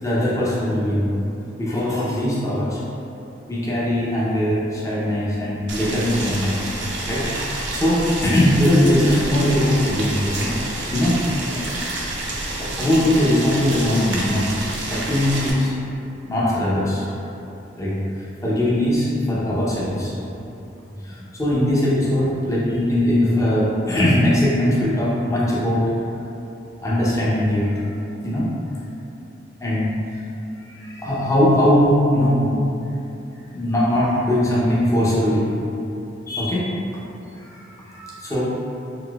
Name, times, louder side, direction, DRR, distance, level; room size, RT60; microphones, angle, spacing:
voice 1, 0.0-1.0 1.6-2.8 3.5-6.7 7.1-11.2 11.5-11.7 12.6-15.7 16.3-17.1 17.8-18.0 18.4-20.1 21.0-25.8 26.8-27.7 28.2-28.5 29.6-29.9 30.6-32.6 33.5-35.5 36.3-36.7 37.4-38.4, left 1 dB, 15° left, -7 dB, 0.5 m, -20 dB
Boiling, 5.7-15.5, right 2 dB, 75° right, 0.5 m, -28 dB
4.0 x 2.6 x 2.2 m, 2.8 s
head